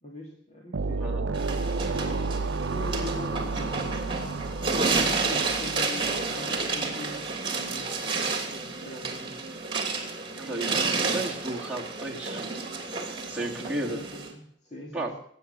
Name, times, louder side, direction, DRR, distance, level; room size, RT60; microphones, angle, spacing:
voice 1, 0.0-1.8 2.7-3.9 4.6-9.4 10.5-11.0 13.3-15.2, left 1 dB, 35° left, -1 dB, 2.5 m, -42 dB
sound 1, 0.7-7.2, right 4 dB, 80° right, 0.6 m, -32 dB
voice 2, 0.8-1.4 10.4-12.5 13.2-14.0 14.9-15.2, right 2 dB, 5° right, -3 dB, 2.6 m, -34 dB
sound 2, 1.3-14.3, right 4 dB, 25° right, 2.9 m, -30 dB
21.0 x 9.1 x 6.8 m, 0.71 s
head